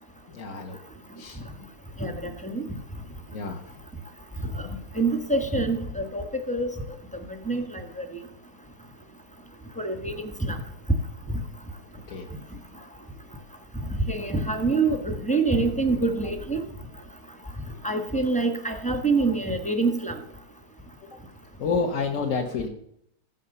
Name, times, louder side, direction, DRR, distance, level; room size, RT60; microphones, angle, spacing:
voice 1, 0.3-0.8 1.2-1.4 3.3-3.6 12.1-12.3 21.0-21.2 21.6-22.7, left 4 dB, 45° left, 3 dB, 1.1 m, -29 dB
voice 2, 2.0-2.6 5.0-6.7 7.5-7.6 8.0-8.1 9.8-10.1 10.5-10.6 14.1-16.6 17.8-20.1, right 3 dB, 5° left, 6 dB, 1.0 m, -25 dB
14.5 x 8.1 x 6.7 m, 0.74 s
omnidirectional pair, 2.3 m